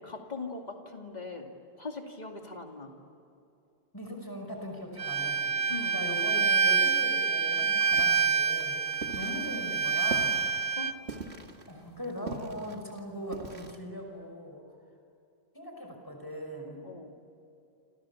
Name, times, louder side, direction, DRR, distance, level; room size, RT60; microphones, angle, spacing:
voice 1, 0.0-1.5 1.8-2.9 5.7-6.0 10.8-10.9 16.8-17.1, left 3 dB, 40° left, 2 dB, 2.7 m, -40 dB
voice 2, 3.9-5.6 5.8-8.7 9.1-10.4 11.7-14.6 15.5-16.9, equal, 20° left, 2 dB, 5.7 m, -39 dB
Bowed string instrument, 5.0-10.9, right 5 dB, 70° right, 1.3 m, -27 dB
sound 1, 7.9-13.8, right 4 dB, 90° right, 2.3 m, -42 dB
28.5 x 28.0 x 7.3 m, 2.6 s
omnidirectional pair, 1.1 m